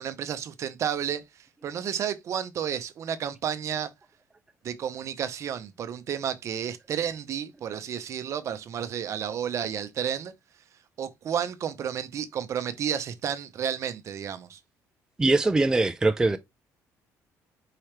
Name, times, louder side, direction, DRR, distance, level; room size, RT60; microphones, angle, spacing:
voice 1, 0.0-3.9 4.6-10.3 11.0-14.6, right 8 dB, 50° right, 0.6 m, -31 dB
voice 2, 15.2-16.4, right 2 dB, 10° right, 0.3 m, -22 dB
4.8 x 2.9 x 3.2 m
cardioid pair, 125°, 6 cm